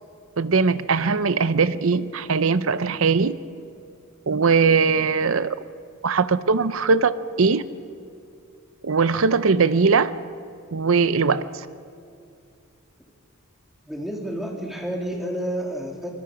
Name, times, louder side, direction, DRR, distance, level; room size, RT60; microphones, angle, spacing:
voice 1, 0.4-3.4 4.3-5.6 6.0-7.6 8.8-10.1 10.7-11.7, right 5 dB, 70° right, 15 dB, 0.7 m, -20 dB
voice 2, 13.9-16.1, right 1 dB, ahead, 0 dB, 2.8 m, -30 dB
25.5 x 20.5 x 5.0 m, 2.4 s
head